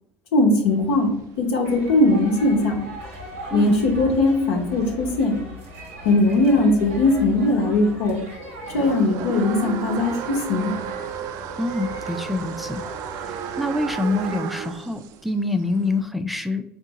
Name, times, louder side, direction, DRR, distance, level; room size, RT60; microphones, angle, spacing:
voice 1, 0.3-2.8 3.5-5.4 6.0-8.2 8.7-10.7, left 2 dB, 75° left, 1 dB, 0.8 m, -20 dB
sound 1, 0.7-7.7 8.1-16.0, right 8 dB, 60° right, 0.4 m, -35 dB
sound 2, 1.6-14.4, equal, 85° right, 1.1 m, -39 dB
voice 2, 11.6-12.8 13.2-16.6, left 2 dB, ahead, 7 dB, 0.4 m, -26 dB
3.6 x 2.7 x 3.9 m, 0.77 s
hypercardioid pair, 70°, 7 cm